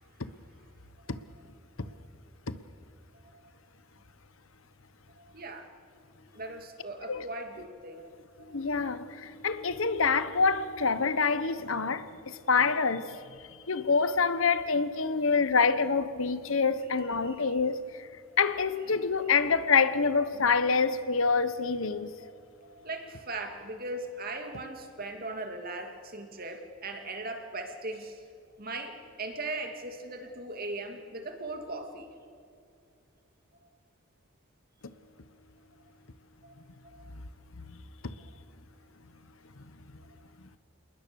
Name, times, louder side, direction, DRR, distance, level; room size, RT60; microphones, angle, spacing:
voice 1, 5.2-5.7 6.3-8.1 8.4-8.7 17.2-17.6 22.2-22.3 22.6-28.2 28.6-32.2 36.4-36.5 36.8-37.1, right 2 dB, 45° right, 2.5 m, -39 dB
voice 2, 8.5-13.2 13.5-18.1 18.4-22.1 37.7-37.8 38.0-38.1, left 5 dB, 70° left, 1.1 m, -26 dB
27.5 x 20.5 x 7.0 m
head